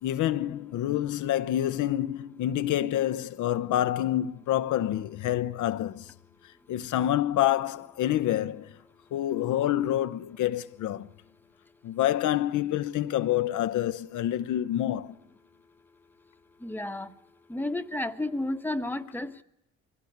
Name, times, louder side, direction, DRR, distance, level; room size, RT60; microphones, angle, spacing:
voice 1, 0.0-6.1 6.7-8.8 9.1-11.1 11.8-15.2, left 12 dB, 80° left, 0.8 m, -27 dB
voice 2, 16.6-17.1 17.5-19.4, left 1 dB, 5° left, 1.2 m, -32 dB
22.5 x 16.5 x 9.4 m
cardioid pair, 90°, 30 cm